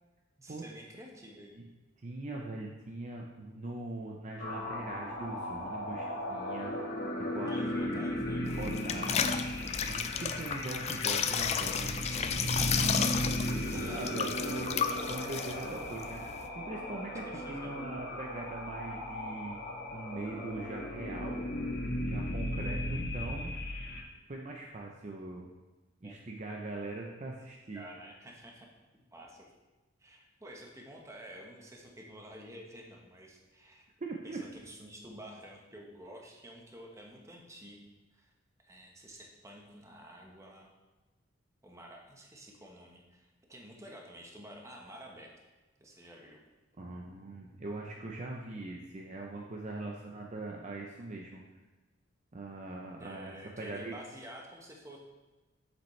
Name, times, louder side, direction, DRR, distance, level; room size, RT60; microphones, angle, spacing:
voice 1, 0.4-1.6 7.5-8.5 12.5-13.3 13.6-14.8 17.3-17.7 22.6-23.1 26.0-26.2 27.7-28.7 28.9-29.4 30.0-33.9 34.2-38.3 38.6-40.7 41.6-45.4 45.8-46.4 53.0-55.0, equal, 15° right, 0 dB, 1.0 m, -50 dB
voice 2, 2.0-6.0 6.3-6.9 7.3-8.1 8.6-9.4 9.8-12.1 12.9-13.4 13.7-16.2 16.6-17.2 17.5-19.6 19.9-21.4 22.0-23.5 24.3-25.5 26.0-27.8 34.0-34.4 46.8-51.4 52.3-54.0, right 2 dB, 35° right, 0 dB, 0.6 m, -41 dB
sound 1, 4.4-24.0, left 1 dB, 55° left, 1.4 m, -36 dB
sound 2, 8.4-16.5, left 7 dB, 35° left, 0.3 m, -33 dB
7.4 x 7.1 x 3.2 m, 1.2 s
head